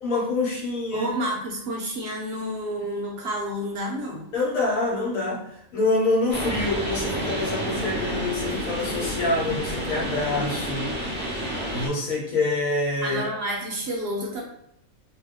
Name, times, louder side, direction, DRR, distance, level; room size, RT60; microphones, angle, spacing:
voice 1, 0.0-1.1 4.3-5.5 5.7-10.9 11.7-13.2, left 2 dB, 80° left, -2 dB, 1.2 m, -26 dB
voice 2, 0.9-4.3 13.0-14.4, right 1 dB, 60° right, -1 dB, 0.8 m, -30 dB
sound 1, 6.3-11.9, equal, 10° right, 0.7 m, -30 dB
2.7 x 2.2 x 3.4 m, 0.76 s
omnidirectional pair, 1.4 m